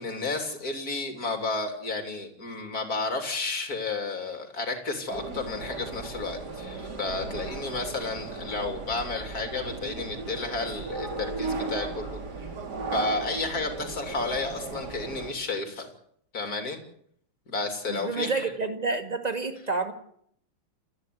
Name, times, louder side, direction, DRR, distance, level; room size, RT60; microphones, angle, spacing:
voice 1, 0.0-12.2 12.9-15.9 16.3-16.8 17.5-18.5, left 3 dB, 45° left, 5 dB, 3.7 m, -32 dB
sound 1, 5.1-15.3, right 3 dB, 55° right, 3.1 m, -36 dB
voice 2, 17.9-19.9, right 3 dB, 20° right, 7 dB, 2.2 m, -29 dB
29.5 x 10.5 x 9.4 m, 0.66 s
omnidirectional pair, 2.2 m